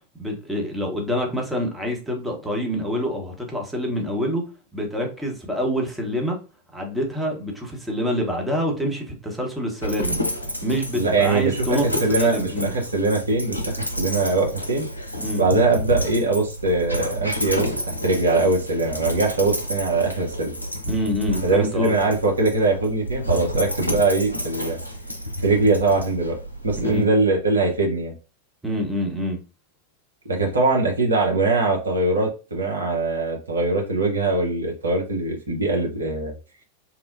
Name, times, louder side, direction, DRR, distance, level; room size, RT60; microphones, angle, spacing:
voice 1, 0.2-4.5 4.7-6.4 6.7-10.2 10.6-12.7 15.2-15.5 20.9-21.9 26.8-27.1 28.6-29.4, equal, 5° right, 0.8 m, -26 dB
Dog, 9.8-27.0, equal, 90° left, 0.5 m, -30 dB
voice 2, 10.9-14.9 15.4-20.5 21.4-24.8 25.4-26.4 26.6-28.1 30.3-36.3, right 3 dB, 75° right, 0.8 m, -22 dB
2.9 x 2.0 x 2.4 m
figure-of-eight pair, 90°, 0 cm